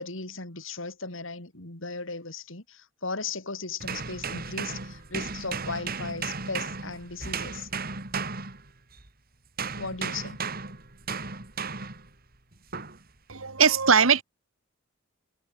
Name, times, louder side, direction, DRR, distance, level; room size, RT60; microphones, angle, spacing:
voice 1, 0.0-7.7 9.7-10.4, left 4 dB, 70° left, 4.2 m, -36 dB
sound 1, 3.8-9.1 9.6-12.1 12.7-13.0, right 4 dB, 45° right, 3.9 m, -35 dB
voice 2, 13.3-14.2, right 6 dB, 90° right, 1.8 m, -20 dB
head